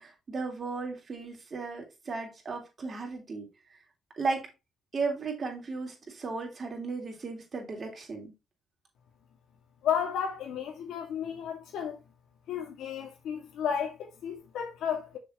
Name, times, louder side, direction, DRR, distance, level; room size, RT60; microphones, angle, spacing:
voice 1, 0.0-3.5 4.2-4.5 4.9-8.3, right 4 dB, 40° right, 3.4 m, -35 dB
voice 2, 9.8-12.0 12.5-15.2, left 8 dB, 80° left, 2.3 m, -33 dB
6.8 x 6.6 x 3.2 m
cardioid pair, 90°, 0 cm